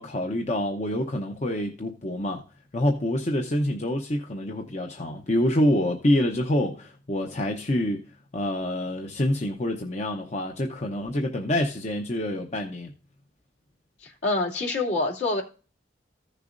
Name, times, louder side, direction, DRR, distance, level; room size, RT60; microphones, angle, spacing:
voice 1, 0.0-2.4 2.7-8.0 8.3-12.9, left 1 dB, 40° left, 0.8 m, -26 dB
voice 2, 14.0-15.4, left 2 dB, 65° left, 2.7 m, -26 dB
15.0 x 6.6 x 2.6 m
head